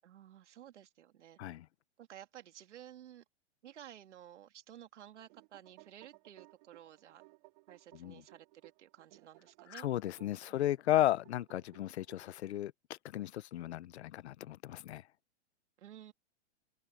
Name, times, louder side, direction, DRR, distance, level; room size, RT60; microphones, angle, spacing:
voice 1, 0.0-1.4 2.0-3.2 3.6-7.2 7.7-9.9 10.5-10.7 15.8-16.1, right 11 dB, 85° right, 2.6 m, -54 dB
sound 1, 5.1-12.7, right 24 dB, 40° right, 3.2 m, -62 dB
voice 2, 9.7-12.7 13.0-15.0, left 13 dB, 70° left, 0.9 m, -34 dB
supercardioid pair, 165°, 34 cm